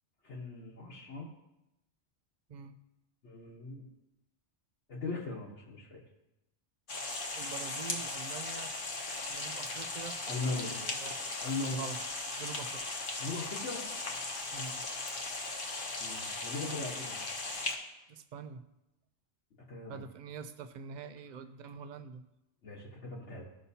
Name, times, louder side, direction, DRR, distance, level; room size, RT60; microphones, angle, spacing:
voice 1, 0.2-1.3 3.2-3.9 4.9-6.0 10.3-10.8 11.4-11.9 13.2-13.8 16.0-17.4 19.7-20.0 22.6-23.4, left 3 dB, 70° left, -5 dB, 1.4 m, -39 dB
sound 1, 6.9-17.8, left 3 dB, 50° left, 1.1 m, -38 dB
voice 2, 7.4-8.7 9.3-11.3 11.7-12.0 12.4-12.8 14.5-14.8 18.1-18.6 19.9-22.2, right 5 dB, 55° right, 10 dB, 0.5 m, -45 dB
14.5 x 5.7 x 2.7 m, 0.92 s
omnidirectional pair, 1.2 m